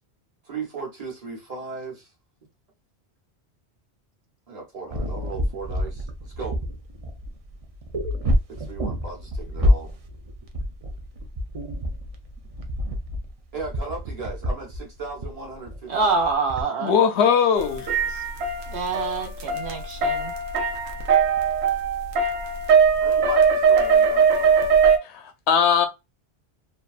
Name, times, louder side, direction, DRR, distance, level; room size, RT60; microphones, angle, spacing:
voice 1, 0.4-2.1 4.5-6.6 8.5-10.0 13.5-16.1 23.0-24.7, right 4 dB, 35° right, 1.0 m, -37 dB
sound 1, 4.9-16.6, left 1 dB, 50° right, 0.4 m, -28 dB
voice 2, 15.9-16.9 18.7-20.3, right 4 dB, 75° right, 1.1 m, -26 dB
voice 3, 16.8-17.8 25.1-25.9, left 7 dB, 80° left, 0.9 m, -19 dB
sound 2, 17.6-25.0, right 5 dB, 90° right, 0.9 m, -21 dB
2.8 x 2.2 x 2.3 m
omnidirectional pair, 1.1 m